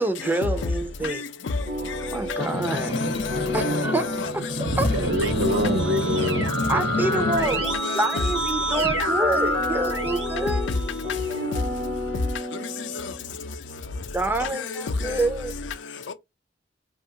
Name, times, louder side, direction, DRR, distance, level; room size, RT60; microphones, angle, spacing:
voice 1, 0.0-1.2 2.1-2.9 3.5-4.9 6.7-7.6 7.9-10.7 14.1-15.5, right 2 dB, 10° right, 0.4 m, -27 dB
voice 2, 1.0-2.0 2.3-3.5 4.6-4.7 11.1-11.6 12.5-13.1 14.8-15.1 16.1-16.2, left 4 dB, 80° left, 0.5 m, -31 dB
sound 1, 1.7-13.4, right 1 dB, 55° right, 1.0 m, -33 dB
sound 2, 2.4-7.5, left 2 dB, 60° left, 0.8 m, -28 dB
voice 3, 4.8-7.3, equal, 70° right, 0.6 m, -26 dB
Keyboard (musical), 4.9-11.5, equal, 90° right, 1.0 m, -29 dB
2.7 x 2.3 x 2.8 m
head